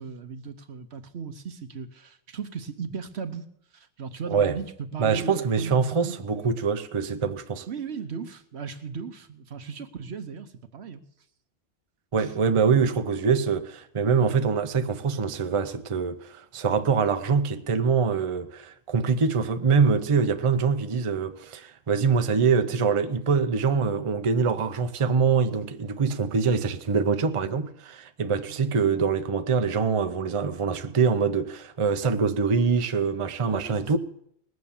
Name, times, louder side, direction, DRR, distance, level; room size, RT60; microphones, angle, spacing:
voice 1, 0.0-3.5 3.7-4.6 4.9-6.2 6.4-6.5 7.7-11.0 12.2-12.3 28.5-28.6 33.5-34.0, right 6 dB, 70° right, 1.2 m, -37 dB
voice 2, 4.3-4.6 5.0-7.7 12.1-34.0, right 5 dB, 35° right, 0.6 m, -24 dB
19.5 x 7.8 x 7.1 m
omnidirectional pair, 1.2 m